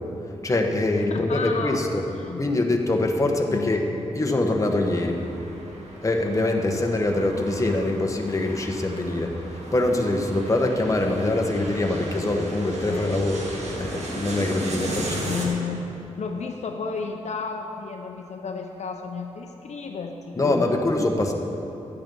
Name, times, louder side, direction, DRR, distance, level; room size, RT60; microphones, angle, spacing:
voice 1, 0.4-2.0 2.4-3.9 4.1-5.2 6.0-9.3 9.7-13.4 13.8-15.3 20.4-21.3, left 2 dB, 25° left, 2 dB, 1.3 m, -24 dB
voice 2, 1.1-1.8 2.1-2.4 3.4-4.2 12.8-13.3 15.0-15.8 16.2-20.8, left 5 dB, 70° left, 4 dB, 0.7 m, -32 dB
sound 1, 4.5-15.5, right 1 dB, 65° right, 1.9 m, -36 dB
12.5 x 8.7 x 5.4 m, 3.0 s
cardioid pair, 75°, 12 cm